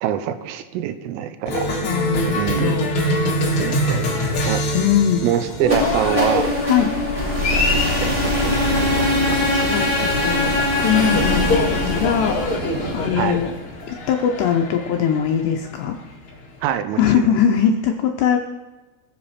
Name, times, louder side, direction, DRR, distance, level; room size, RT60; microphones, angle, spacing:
voice 1, 0.0-2.1 2.4-2.8 3.6-4.6 5.2-6.5 7.5-10.1 13.2-13.4 16.6-17.3, right 10 dB, 85° right, 11 dB, 3.3 m, -26 dB
Cheering, 1.5-16.6, left 1 dB, 60° left, 1.4 m, -25 dB
voice 2, 1.8-2.9 4.7-5.2 6.6-6.9 9.5-12.7 12.9-13.5 13.9-16.0 17.0-18.4, left 8 dB, 80° left, 2 dB, 2.5 m, -21 dB
sound 1, 5.6-13.5, left 1 dB, 15° right, 3.9 m, -22 dB
sound 2, 8.5-15.4, right 2 dB, 65° right, 1.8 m, -33 dB
22.5 x 7.9 x 4.2 m, 1.2 s
omnidirectional pair, 5.8 m